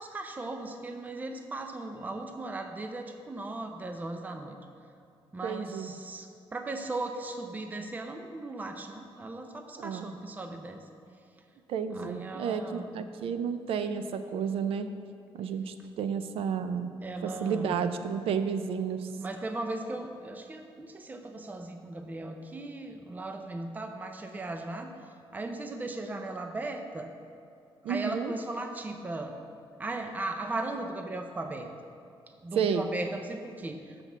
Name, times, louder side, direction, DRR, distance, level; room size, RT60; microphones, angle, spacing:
voice 1, 0.0-4.6 5.3-10.8 11.9-13.0 17.0-17.8 19.2-24.9 25.3-27.1 27.9-29.4 29.8-31.7 32.4-34.0, right 2 dB, 15° right, 5 dB, 0.5 m, -37 dB
voice 2, 5.4-5.9 9.8-10.2 11.7-14.9 15.3-16.9 17.2-19.1 27.8-28.3 32.5-32.8, right 7 dB, 80° right, 10 dB, 0.5 m, -31 dB
6.8 x 6.0 x 7.2 m, 2.5 s
cardioid pair, 130°, 10 cm